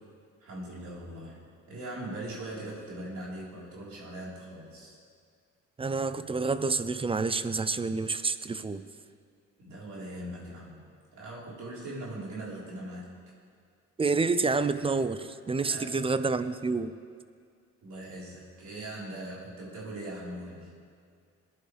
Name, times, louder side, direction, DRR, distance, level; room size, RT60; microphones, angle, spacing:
voice 1, 0.4-5.0 9.6-10.9 11.1-13.1 15.6-16.0 17.8-20.7, right 1 dB, 70° right, -6 dB, 4.2 m, -40 dB
voice 2, 5.8-8.8 14.0-17.0, right 4 dB, 20° right, 13 dB, 0.5 m, -28 dB
20.5 x 11.0 x 3.4 m, 2.1 s
cardioid pair, 90°, 30 cm